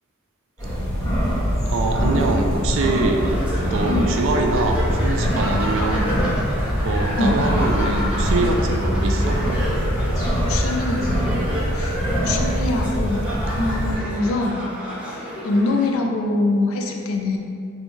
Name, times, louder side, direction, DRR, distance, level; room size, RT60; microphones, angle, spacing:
sound 1, 0.6-14.0, equal, 15° left, 1.2 m, -23 dB
voice 1, 1.7-3.3 3.7-6.1 6.8-9.4, right 2 dB, 60° right, 3 dB, 0.3 m, -24 dB
sound 2, 3.1-15.9, equal, 5° right, 0.6 m, -31 dB
voice 2, 10.5-11.1 11.8-12.0 12.2-14.6 15.4-17.4, left 2 dB, 70° left, 2 dB, 0.4 m, -23 dB
3.1 x 2.7 x 3.0 m, 2.3 s
head